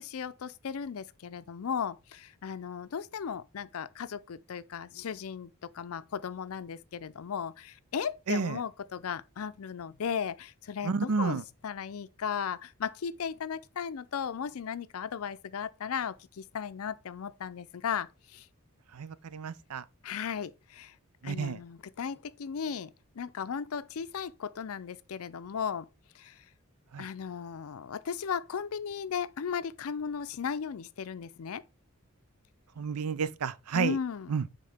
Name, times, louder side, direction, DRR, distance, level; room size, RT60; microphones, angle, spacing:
voice 1, 0.0-18.5 20.0-20.9 21.2-22.9 23.2-25.9 26.1-26.4 27.0-31.6 33.7-34.5, left 7 dB, 70° left, 0.5 m, -36 dB
voice 2, 8.3-8.6 10.8-11.4 18.9-19.8 21.2-21.6 26.9-27.1 32.8-34.0 34.3-34.4, right 5 dB, 85° right, 0.5 m, -31 dB
9.3 x 3.7 x 3.4 m
head